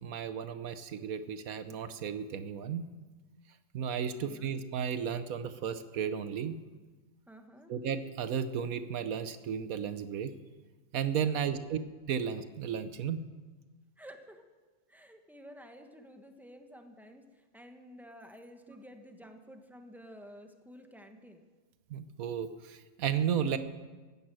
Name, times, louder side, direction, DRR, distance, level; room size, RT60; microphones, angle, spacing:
voice 1, 0.0-2.9 3.7-6.6 7.7-10.3 10.9-11.8 12.1-13.2 21.9-23.6, right 7 dB, 75° right, 11 dB, 1.3 m, -34 dB
voice 2, 4.1-4.5 7.3-7.7 11.5-11.7 14.0-14.4 14.9-21.4 23.3-23.6, equal, ahead, 5 dB, 1.2 m, -52 dB
14.5 x 11.0 x 7.7 m, 1.3 s
omnidirectional pair, 1.5 m